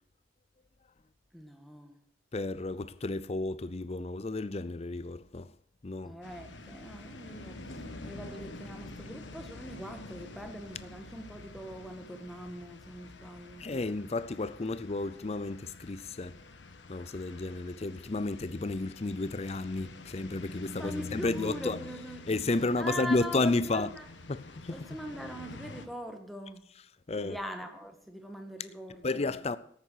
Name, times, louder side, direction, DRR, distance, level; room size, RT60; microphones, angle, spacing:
voice 1, 1.3-2.0 6.0-13.7 20.8-22.3 22.8-24.1 24.7-26.6 27.2-29.3, equal, ahead, 1.4 m, -42 dB
voice 2, 2.3-5.5 5.8-6.1 13.6-16.4 16.9-21.8 22.3-23.9 24.3-24.8 27.1-27.4 29.0-29.6, left 2 dB, 35° left, 0.5 m, -32 dB
sound 1, 6.2-25.9, left 2 dB, 80° left, 1.3 m, -47 dB
13.5 x 8.8 x 6.4 m
head